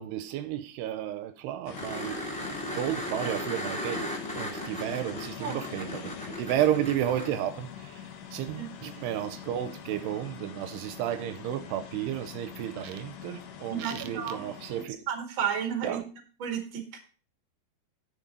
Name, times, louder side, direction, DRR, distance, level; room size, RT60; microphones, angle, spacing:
voice 1, 0.0-2.2 2.5-15.0 15.8-16.0, right 11 dB, 85° right, 2.7 m, -32 dB
sound 1, 1.7-14.9, left 8 dB, 65° left, 2.5 m, -43 dB
sound 2, 1.7-7.3 10.0-10.1, equal, 5° left, 0.5 m, -37 dB
voice 2, 13.7-14.5 15.1-16.0 16.4-17.0, right 8 dB, 40° right, 2.0 m, -32 dB
10.0 x 6.5 x 5.3 m
omnidirectional pair, 4.9 m